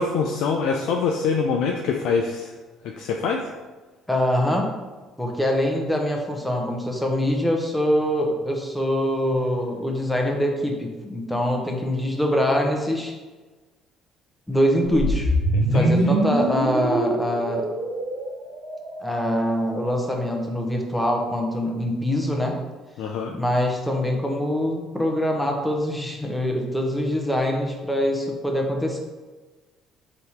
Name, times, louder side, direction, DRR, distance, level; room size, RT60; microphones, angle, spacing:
voice 1, 0.0-2.5 3.0-3.4 15.5-16.2 23.0-23.3, left 5 dB, 70° left, 2 dB, 0.3 m, -25 dB
voice 2, 4.1-4.7 5.2-13.1 14.5-17.7 19.0-22.6 23.3-29.0, equal, 5° left, 1 dB, 0.8 m, -24 dB
sound 1, 14.9-19.2, right 1 dB, 85° right, 0.8 m, -23 dB
3.4 x 2.9 x 4.2 m, 1.3 s
hypercardioid pair, 65°, 0 cm